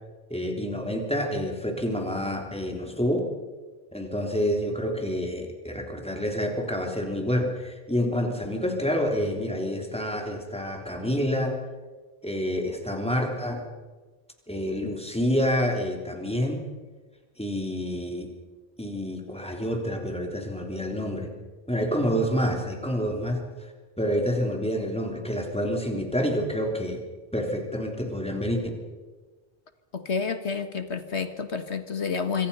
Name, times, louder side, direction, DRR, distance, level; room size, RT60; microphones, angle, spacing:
voice 1, 0.3-3.2 3.9-11.6 12.2-13.6 14.5-16.6 17.4-18.3 18.8-21.3 21.7-23.7 24.0-27.0 27.3-28.6, equal, 5° left, 2 dB, 3.4 m, -28 dB
voice 2, 29.9-32.5, left 5 dB, 75° left, 9 dB, 2.0 m, -29 dB
25.5 x 24.5 x 5.6 m, 1.3 s
omnidirectional pair, 1.1 m